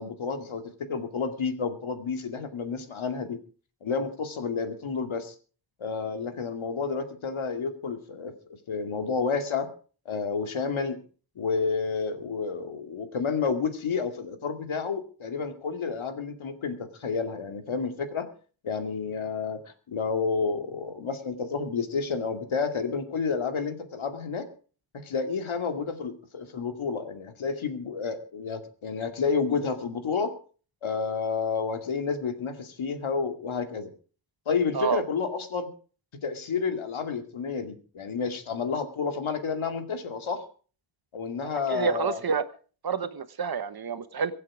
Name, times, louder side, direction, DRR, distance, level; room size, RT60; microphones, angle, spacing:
voice 1, 0.0-3.4 3.8-5.3 5.8-8.3 8.7-9.7 10.1-11.0 11.4-18.3 18.6-24.5 25.0-30.3 30.8-33.9 34.5-35.7 36.2-40.4 41.1-42.2, left 5 dB, 85° left, 6 dB, 2.5 m, -30 dB
voice 2, 41.4-42.4 42.8-44.3, right 6 dB, 50° right, 12 dB, 1.3 m, -28 dB
24.0 x 8.5 x 5.0 m, 0.40 s
wide cardioid pair, 175°, 47 cm